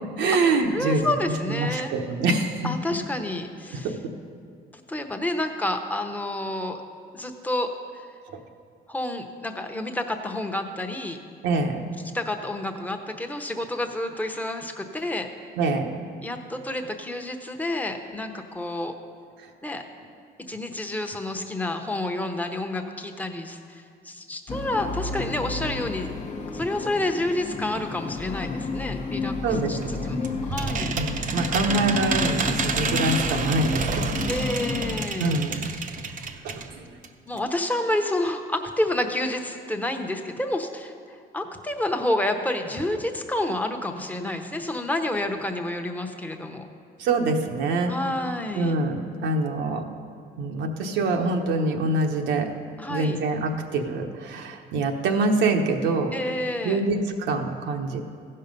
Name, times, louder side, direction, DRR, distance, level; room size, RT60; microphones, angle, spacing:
voice 1, 0.2-1.1 1.5-2.7 11.4-11.9 15.6-15.9 29.4-30.2 31.0-34.5 35.2-35.6 36.4-36.9 47.0-47.9 48.6-49.8 50.4-52.5 52.9-56.1 56.6-58.0, right 3 dB, 85° right, 3 dB, 1.0 m, -25 dB
voice 2, 0.7-1.9 2.6-3.9 4.9-6.8 7.1-8.1 8.9-11.2 12.1-15.3 16.2-18.9 19.6-19.8 20.5-26.1 26.5-31.0 34.3-35.3 35.8-35.9 36.2-36.3 37.3-46.7 47.9-48.8 52.8-53.2 56.1-56.8, left 1 dB, 10° left, 5 dB, 0.9 m, -29 dB
sound 1, 24.5-35.0, left 4 dB, 40° left, 0.8 m, -31 dB
sound 2, 29.8-36.7 37.0-37.1 37.4-37.5, right 5 dB, 45° right, 0.7 m, -29 dB
15.5 x 5.6 x 5.3 m, 2.2 s
cardioid pair, 95°, 18 cm